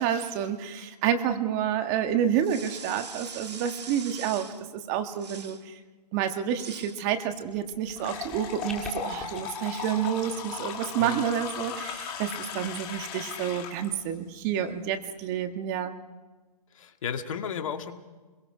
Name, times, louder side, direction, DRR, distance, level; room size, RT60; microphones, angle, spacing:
voice 1, 0.0-4.5 4.7-5.7 6.1-15.9, right 9 dB, 25° right, 8 dB, 1.5 m, -29 dB
sound 1, 2.4-4.6 5.1-5.6 6.5-7.0, right 5 dB, 80° right, 2.3 m, -42 dB
sound 2, 7.5-9.4, left 1 dB, ahead, 1.9 m, -45 dB
sound 3, 8.0-13.9, left 7 dB, 20° left, 2.3 m, -37 dB
voice 2, 16.7-17.9, left 7 dB, 55° left, 6 dB, 1.9 m, -33 dB
24.5 x 22.5 x 4.9 m, 1.3 s
hypercardioid pair, 150°, 21 cm